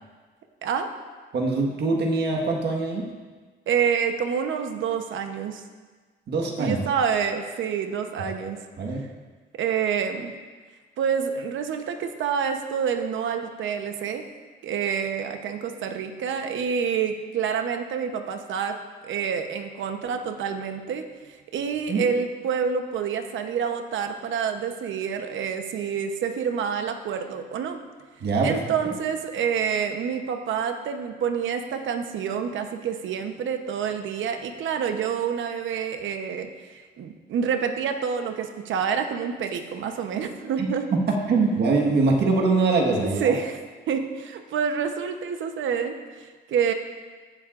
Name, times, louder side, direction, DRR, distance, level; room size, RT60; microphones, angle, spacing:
voice 1, 1.3-3.1 6.3-6.8 8.2-8.3 8.8-9.0 21.9-22.0 28.2-28.9 40.6-40.7 41.1-43.4, right 3 dB, 60° right, 0 dB, 1.6 m, -23 dB
voice 2, 3.7-5.6 6.6-8.6 9.5-10.3 11.0-14.2 14.6-18.8 19.0-27.8 28.4-40.9 43.2-43.6 43.9-46.7, right 7 dB, 75° right, 6 dB, 1.0 m, -27 dB
17.5 x 7.6 x 2.5 m, 1.4 s
cardioid pair, 90°, 20 cm